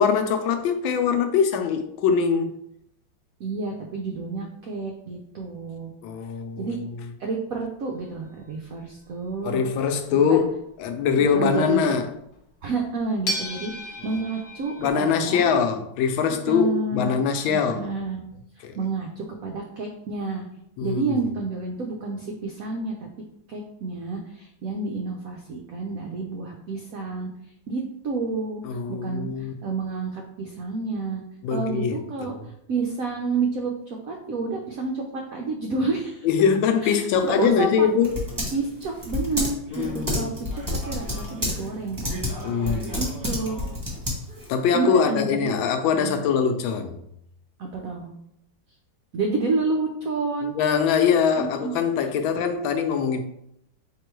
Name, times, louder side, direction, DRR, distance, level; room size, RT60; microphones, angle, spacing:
voice 1, 0.0-2.5 6.0-6.7 9.4-12.1 14.8-17.8 18.6-18.7 20.8-21.2 28.6-29.5 31.4-32.0 32.2-32.3 36.2-38.1 39.7-40.3 42.4-43.0 44.5-47.0 50.6-53.2, left 6 dB, 80° left, 1.3 m, -23 dB
voice 2, 3.4-5.9 6.6-6.8 7.2-9.6 10.1-10.4 11.2-11.9 12.6-15.4 16.5-17.1 17.5-18.2 18.6-20.4 20.8-23.1 23.5-27.3 27.7-31.2 31.5-36.3 36.8-37.9 38.5-42.2 42.6-43.6 44.7-46.2 47.6-48.1 49.1-50.5 51.4-51.7, right 3 dB, 80° right, 0.7 m, -30 dB
sound 1, 8.0-9.6 12.4-12.5 13.3-14.9, left 1 dB, 55° left, 0.9 m, -33 dB
Typing, 37.1-44.6, left 1 dB, 15° right, 1.0 m, -31 dB
3.7 x 3.0 x 4.5 m
omnidirectional pair, 2.1 m